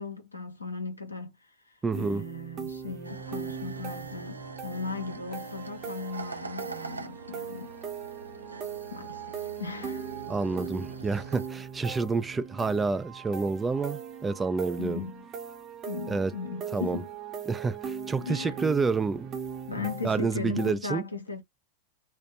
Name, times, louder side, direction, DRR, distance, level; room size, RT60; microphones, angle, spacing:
voice 1, 0.0-7.7 8.9-10.2 14.8-15.3 15.8-17.1 18.2-18.6 19.7-21.4, left 4 dB, 85° left, 0.7 m, -37 dB
voice 2, 1.8-2.2 10.3-15.0 16.1-16.3 16.7-17.0 17.5-19.3 20.0-21.0, right 4 dB, 15° right, 0.4 m, -28 dB
sound 1, 1.9-20.7, right 7 dB, 30° right, 0.8 m, -40 dB
sound 2, 3.0-11.5, right 3 dB, 80° right, 0.4 m, -44 dB
2.5 x 2.1 x 2.8 m
figure-of-eight pair, 90°, 0 cm